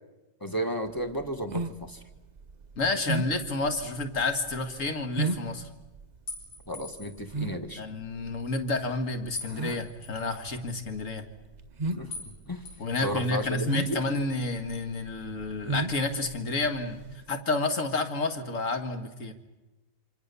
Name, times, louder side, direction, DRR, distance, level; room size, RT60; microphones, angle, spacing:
voice 1, 0.4-2.0 6.7-7.8 12.0-12.1 12.5-12.6 13.0-14.0, equal, 10° left, 6 dB, 1.3 m, -33 dB
sound 1, 0.9-17.2, right 2 dB, 40° right, 0.6 m, -35 dB
voice 2, 2.8-5.7 7.8-11.2 12.8-17.0 17.3-19.3, left 3 dB, 40° left, 7 dB, 2.1 m, -30 dB
sound 2, 6.3-7.2 9.4-10.3 12.1-12.3 12.7-13.6, left 3 dB, 80° left, 5.7 m, -42 dB
27.0 x 26.0 x 6.9 m, 1.1 s
omnidirectional pair, 2.2 m